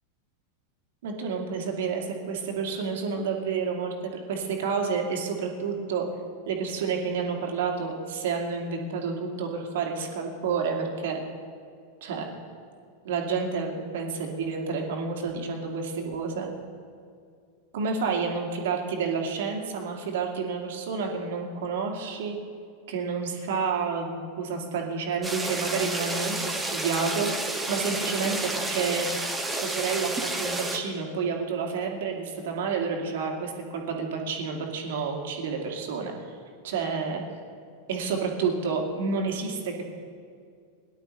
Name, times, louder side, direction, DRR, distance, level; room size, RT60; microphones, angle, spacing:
voice 1, 1.0-6.1 6.5-11.2 12.0-12.2 13.0-16.5 17.7-22.4 22.9-29.1 29.5-36.1 36.6-37.2 37.9-39.8, right 5 dB, 55° right, 1 dB, 2.3 m, -30 dB
sound 1, 25.2-30.8, right 2 dB, 10° right, 1.8 m, -30 dB
22.5 x 11.5 x 3.2 m, 2.3 s
figure-of-eight pair, 90°, 0 cm